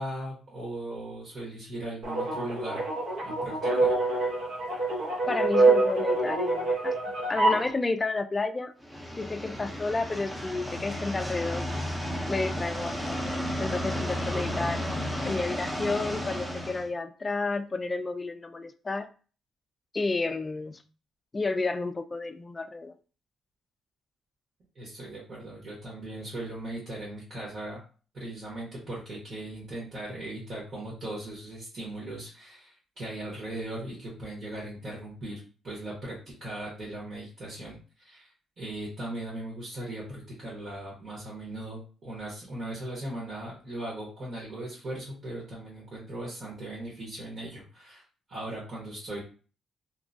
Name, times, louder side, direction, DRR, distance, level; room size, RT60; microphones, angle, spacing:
voice 1, 0.0-2.9 3.2-4.0 24.7-27.8 28.1-35.4 35.6-48.0 48.3-49.2, right 1 dB, 50° right, -6 dB, 1.3 m, -38 dB
sound 1, 2.0-7.7, right 2 dB, 80° right, 0.9 m, -25 dB
voice 2, 5.3-6.9 7.3-8.7 9.2-11.7 12.3-13.2 13.6-14.8 15.2-19.1 19.9-20.8 21.3-22.9, left 3 dB, 25° left, 9 dB, 0.3 m, -31 dB
sound 2, 8.8-16.9, equal, 10° right, 0.6 m, -33 dB
2.9 x 2.2 x 2.6 m, 0.38 s
cardioid pair, 90°, 0 cm